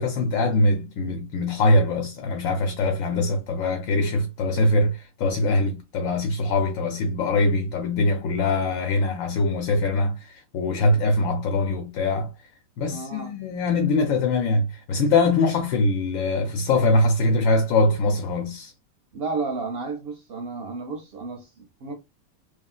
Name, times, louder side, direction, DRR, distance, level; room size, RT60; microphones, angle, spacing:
voice 1, 0.0-12.3 12.8-18.7, left 2 dB, 80° left, 1.0 m, -22 dB
voice 2, 12.9-13.3 19.1-21.9, right 4 dB, 60° right, 0.7 m, -32 dB
3.2 x 2.3 x 2.3 m
omnidirectional pair, 1.4 m